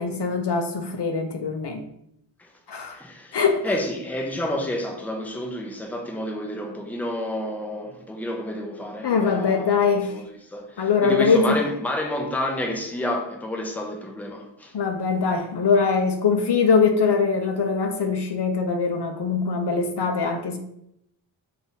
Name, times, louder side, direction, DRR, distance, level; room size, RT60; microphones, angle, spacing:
voice 1, 0.0-1.8 2.7-3.0 3.3-3.6 9.0-10.1 10.8-11.6 14.7-20.6, left 5 dB, 60° left, 0.6 m, -22 dB
voice 2, 2.4-14.7, left 1 dB, 5° left, 0.6 m, -30 dB
3.5 x 2.6 x 4.0 m
wide cardioid pair, 65°, 46 cm